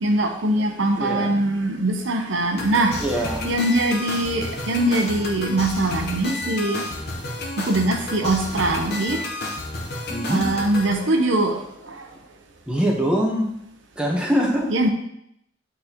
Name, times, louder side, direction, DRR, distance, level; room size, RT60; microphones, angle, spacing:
voice 1, 0.0-3.0 3.4-6.9 7.6-9.3 10.3-12.1 14.7-14.9, right 1 dB, 70° right, 4 dB, 0.7 m, -22 dB
voice 2, 1.0-1.6 3.0-3.6 10.1-10.5 12.7-13.5 14.0-14.7, equal, 5° right, -2 dB, 0.9 m, -23 dB
sound 1, 2.6-10.9, left 2 dB, 55° left, 0.9 m, -31 dB
8.6 x 4.0 x 2.9 m, 0.76 s
head